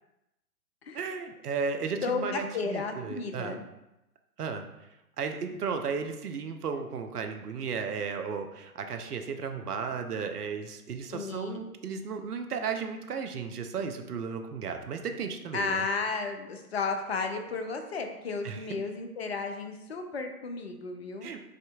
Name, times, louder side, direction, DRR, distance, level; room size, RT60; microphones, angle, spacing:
voice 1, 0.9-3.6 4.4-4.6 5.2-15.8 18.4-18.7 21.2-21.4, right 5 dB, 75° right, 6 dB, 0.6 m, -34 dB
voice 2, 2.0-3.6 11.1-11.7 15.5-21.3, left 4 dB, 45° left, 6 dB, 0.5 m, -33 dB
4.8 x 2.6 x 2.3 m, 0.93 s
figure-of-eight pair, 130°, 46 cm